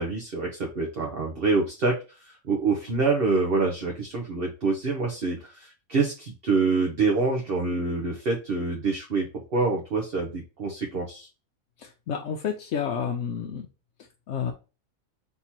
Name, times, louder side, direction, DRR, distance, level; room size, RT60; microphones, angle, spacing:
voice 1, 0.0-11.3, right 4 dB, 50° right, 1 dB, 1.0 m, -26 dB
voice 2, 11.8-13.7 14.3-14.5, left 7 dB, 65° left, 1 dB, 0.9 m, -30 dB
3.6 x 2.9 x 4.1 m, 0.31 s
omnidirectional pair, 1.5 m